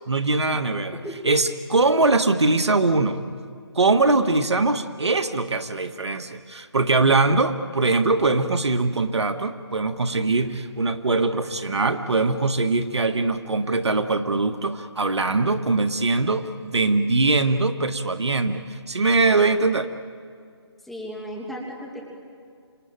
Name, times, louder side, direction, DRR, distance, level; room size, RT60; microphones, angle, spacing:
voice 1, 0.1-1.0 1.2-3.2 3.7-19.9, right 3 dB, 75° right, 8 dB, 1.7 m, -22 dB
voice 2, 20.8-22.0, equal, ahead, -1 dB, 2.4 m, -35 dB
26.5 x 24.5 x 9.1 m, 2.2 s
figure-of-eight pair, 160°, 14 cm